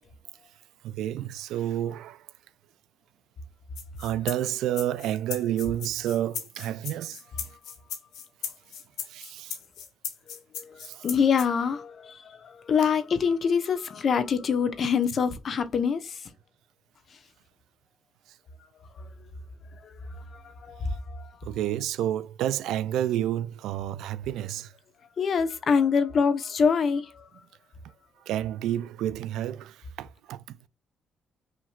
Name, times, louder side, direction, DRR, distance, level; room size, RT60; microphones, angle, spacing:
voice 1, 0.8-2.3 4.0-7.6 8.4-8.5 9.0-9.6 10.8-11.0 18.3-18.4 21.4-24.7 28.2-30.6, right 12 dB, 90° right, 0.4 m, -30 dB
sound 1, 3.8-11.5, left 8 dB, 85° left, 1.1 m, -37 dB
voice 2, 10.5-16.2 19.8-19.9 20.3-21.3 25.2-27.3, left 6 dB, 55° left, 0.9 m, -25 dB
5.8 x 2.9 x 2.4 m
cardioid pair, 90°, 0 cm